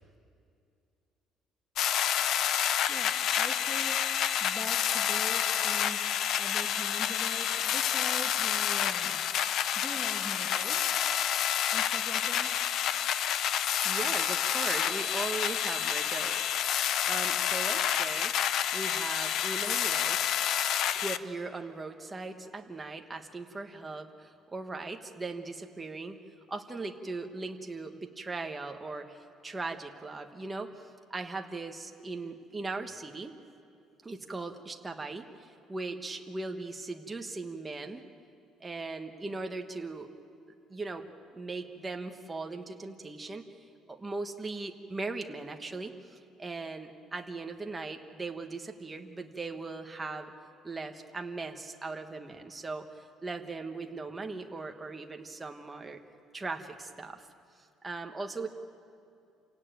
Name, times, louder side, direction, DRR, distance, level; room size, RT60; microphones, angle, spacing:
sound 1, 1.8-21.2, left 10 dB, 55° left, 0.6 m, -29 dB
voice 1, 2.9-4.1 4.4-6.0 6.3-9.2 9.7-11.2 11.7-12.5, left 1 dB, 10° left, 2 dB, 1.6 m, -43 dB
voice 2, 13.8-20.2 20.9-26.2 26.5-33.3 34.0-38.0 38.6-40.1 40.7-41.0 41.3-43.5 43.9-50.3 50.6-56.0 56.3-57.3 57.8-58.5, right 3 dB, 15° right, 4 dB, 1.2 m, -39 dB
27.5 x 17.0 x 9.2 m, 2.5 s
cardioid pair, 170°, 0 cm